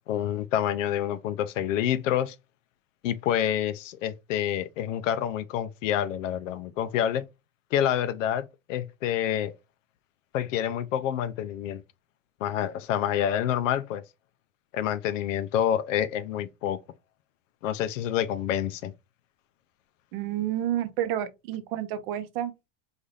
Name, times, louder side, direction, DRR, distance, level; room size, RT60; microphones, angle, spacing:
voice 1, 0.1-2.3 3.0-7.3 7.7-9.5 10.3-11.8 12.4-14.0 14.7-16.8 17.6-18.9, left 10 dB, 80° left, 0.6 m, -27 dB
voice 2, 20.1-22.5, right 11 dB, 50° right, 0.6 m, -30 dB
4.0 x 2.6 x 3.2 m
supercardioid pair, 140°, 38 cm